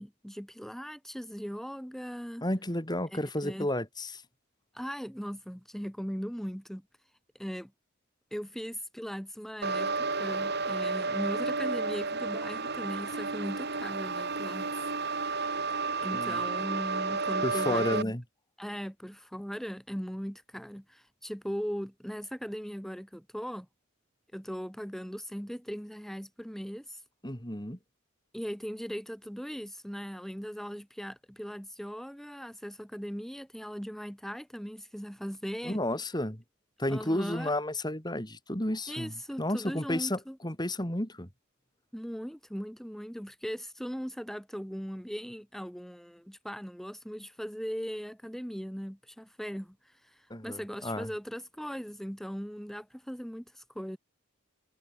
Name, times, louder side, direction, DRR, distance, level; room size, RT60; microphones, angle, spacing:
voice 1, 0.0-2.4 3.4-3.7 4.7-6.8 7.4-7.7 8.3-14.9 16.0-18.1 18.6-23.7 24.3-27.0 28.3-35.8 36.9-37.5 38.9-40.4 41.9-54.0, equal, ahead, 7.9 m, -39 dB
voice 2, 2.4-4.2 16.1-16.4 17.4-18.2 27.2-27.8 35.6-36.4 36.8-41.3 50.3-51.1, left 1 dB, 20° left, 4.4 m, -32 dB
sound 1, 9.6-18.0, right 4 dB, 50° right, 3.7 m, -32 dB
head